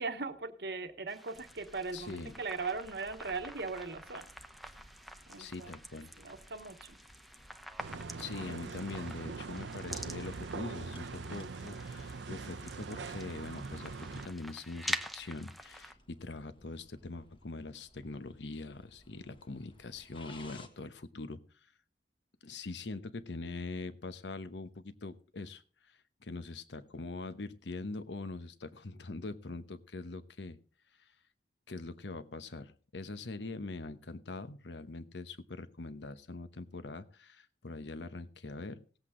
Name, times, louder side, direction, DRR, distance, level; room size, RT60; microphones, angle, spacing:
voice 1, 0.0-4.2 5.3-5.7 6.2-7.0, right 4 dB, 60° right, 8 dB, 1.1 m, -39 dB
sound 1, 1.1-15.9, equal, ahead, 0.6 m, -46 dB
sound 2, 1.3-20.7, left 1 dB, 30° left, 1.5 m, -60 dB
voice 2, 1.9-2.3 5.4-6.1 8.2-21.4 22.4-30.6 31.0-31.1 31.7-38.8, left 3 dB, 75° left, 12 dB, 1.0 m, -43 dB
sound 3, 7.8-14.2, right 4 dB, 80° right, 0.6 m, -42 dB
18.0 x 8.1 x 3.7 m, 0.40 s
head